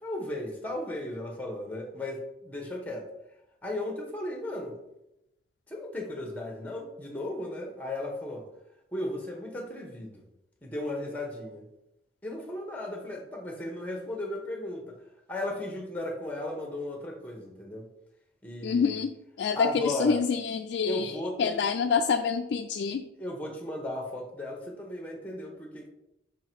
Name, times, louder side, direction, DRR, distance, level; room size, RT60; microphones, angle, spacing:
voice 1, 0.0-3.1 3.6-4.7 5.7-8.4 8.9-10.2 10.6-11.6 12.2-14.9 15.3-17.9 18.4-19.0 19.5-20.2 20.8-21.8 23.2-25.9, left 1 dB, 10° left, 1 dB, 1.0 m, -35 dB
voice 2, 18.6-23.0, left 5 dB, 75° left, 6 dB, 0.3 m, -27 dB
5.7 x 3.7 x 4.5 m, 0.90 s
head